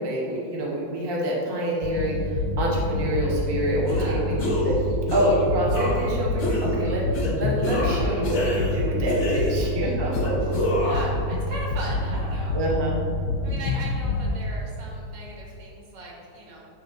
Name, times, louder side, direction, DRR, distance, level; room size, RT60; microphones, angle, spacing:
voice 1, 0.0-2.3 2.6-7.0 7.3-10.6 12.5-13.0, right 1 dB, 15° right, -4 dB, 0.9 m, -27 dB
sound 1, 1.8-14.4, left 2 dB, 85° left, 1.5 m, -27 dB
voice 2, 3.8-4.3 9.3-10.5 10.8-12.6 13.4-16.6, right 1 dB, 85° right, -3 dB, 2.6 m, -39 dB
sound 2, 3.9-4.1 4.4-4.8 5.1-5.3 5.7-6.1 6.4-6.7 7.1-7.3 7.6-8.8 9.1-9.7 10.1-11.1, left 1 dB, 40° left, 1.2 m, -27 dB
9.8 x 4.8 x 3.7 m, 2.7 s
omnidirectional pair, 2.4 m